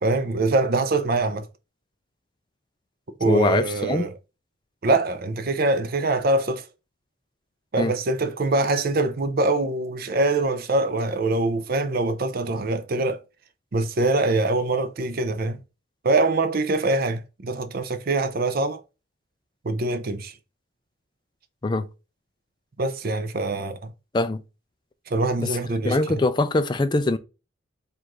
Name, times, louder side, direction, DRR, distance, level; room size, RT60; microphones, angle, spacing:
voice 1, 0.0-1.5 3.2-4.1 4.8-6.7 7.7-13.2 13.7-15.6 16.0-18.8 19.6-20.3 22.8-23.8 25.1-26.2, right 2 dB, 50° right, 0.5 m, -24 dB
voice 2, 3.2-4.0 7.8-7.9 21.6-21.9 24.1-24.4 25.4-25.6 25.8-27.2, left 2 dB, 20° left, 0.4 m, -22 dB
4.6 x 2.5 x 3.7 m
head